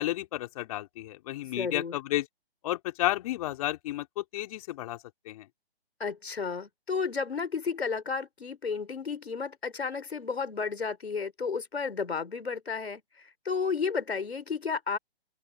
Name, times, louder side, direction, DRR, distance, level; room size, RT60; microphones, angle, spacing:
voice 1, 0.0-2.2 2.6-5.0 5.2-5.5, left 15 dB, 35° left, 3.5 m, -32 dB
voice 2, 1.6-2.0 6.0-15.0, left 5 dB, 85° left, 3.8 m, -32 dB
open air
hypercardioid pair, 145°, 31 cm